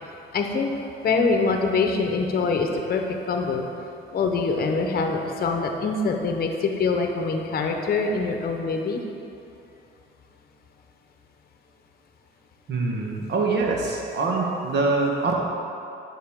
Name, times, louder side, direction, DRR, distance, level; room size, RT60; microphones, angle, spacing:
voice 1, 0.3-0.7 1.0-3.7 4.1-9.0, left 4 dB, 50° left, 3 dB, 0.8 m, -24 dB
voice 2, 12.7-15.3, right 3 dB, 60° right, -1 dB, 1.3 m, -24 dB
8.7 x 6.0 x 3.6 m, 2.7 s
cardioid pair, 90°, 20 cm